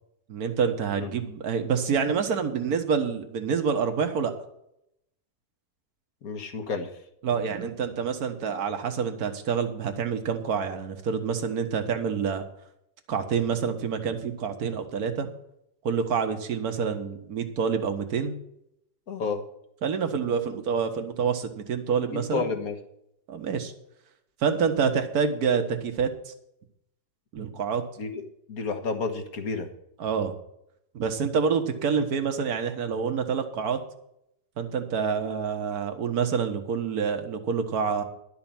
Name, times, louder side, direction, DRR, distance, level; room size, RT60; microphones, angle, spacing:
voice 1, 0.3-4.3 7.2-12.4 13.1-15.3 15.8-18.3 19.8-22.5 23.3-23.7 24.4-26.3 27.3-27.8 30.0-30.3 30.9-33.8 34.6-38.0, right 6 dB, 70° right, 6 dB, 1.8 m, -27 dB
voice 2, 6.2-6.9 19.1-19.4 22.1-22.8 28.0-28.2 28.5-29.7, left 4 dB, 60° left, 6 dB, 1.9 m, -30 dB
12.0 x 5.8 x 8.8 m, 0.77 s
omnidirectional pair, 1.7 m